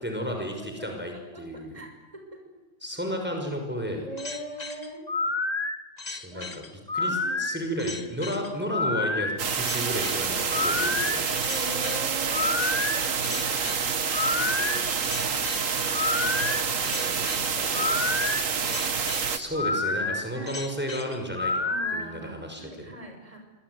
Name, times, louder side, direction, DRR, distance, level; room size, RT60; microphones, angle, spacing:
voice 1, 0.0-1.8 2.8-4.1 6.1-6.5 6.9-11.2 19.3-22.9, equal, 10° right, 3 dB, 6.0 m, -33 dB
voice 2, 1.3-2.4 4.0-5.1 6.3-6.4 7.0-7.4 11.4-14.8 15.2-15.5 15.8-18.9 20.3-20.6 21.7-23.4, right 1 dB, 25° right, 3 dB, 6.4 m, -42 dB
sound 1, 4.2-22.0, left 3 dB, 30° left, 2.0 m, -30 dB
sound 2, 9.4-19.4, right 6 dB, 75° right, 1.9 m, -27 dB
26.5 x 23.0 x 9.7 m, 1.1 s
omnidirectional pair, 1.4 m